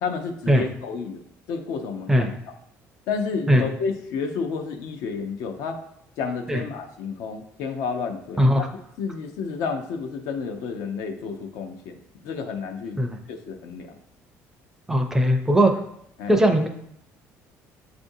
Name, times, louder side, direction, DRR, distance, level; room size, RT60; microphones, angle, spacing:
voice 1, 0.0-1.2 1.5-2.3 3.1-5.8 6.2-8.7 9.0-13.0 13.3-14.0 16.2-16.4, left 5 dB, 80° left, 5 dB, 0.6 m, -31 dB
voice 2, 8.4-8.7 13.0-13.2 14.9-15.7 16.3-16.7, equal, 10° right, 4 dB, 0.4 m, -19 dB
6.9 x 2.5 x 2.6 m, 0.74 s
cardioid pair, 140°, 5 cm